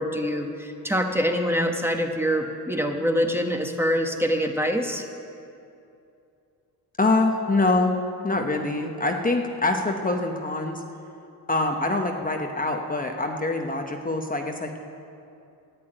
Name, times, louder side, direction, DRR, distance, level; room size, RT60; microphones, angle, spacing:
voice 1, 0.0-5.1, equal, 5° right, 3 dB, 1.1 m, -25 dB
voice 2, 7.0-8.0 8.2-10.8 11.5-14.8, left 2 dB, 20° left, 3 dB, 0.9 m, -24 dB
11.0 x 8.5 x 8.9 m, 2.7 s
cardioid pair, 95°, 39 cm